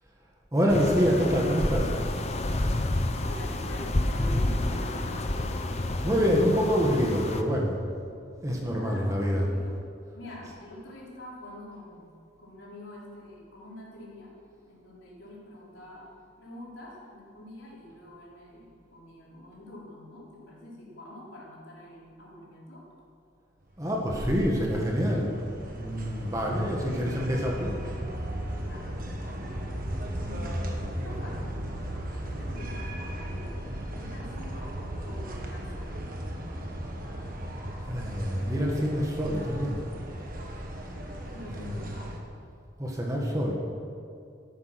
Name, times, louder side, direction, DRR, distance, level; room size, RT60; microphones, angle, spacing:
voice 1, 0.5-1.9 6.0-7.7 8.4-9.5 10.3-10.4 23.8-25.5 25.7-27.8 37.9-39.8 41.5-41.8 42.8-43.5, equal, 15° right, -1 dB, 1.8 m, -26 dB
sound 1, 0.7-7.4, left 1 dB, 35° left, 0.8 m, -29 dB
voice 2, 3.1-5.6 8.7-9.7 10.1-12.1 12.4-14.3 14.7-16.1 16.4-22.9 26.7-27.3 28.5-28.9 29.2-29.9 30.2-31.6 32.2-32.9 33.2-34.7 35.0-36.0 41.2-42.1, left 1 dB, 85° left, -5 dB, 4.2 m, -45 dB
sound 2, 23.8-42.2, right 1 dB, 45° right, 1.7 m, -36 dB
13.5 x 11.0 x 6.1 m, 2.4 s
head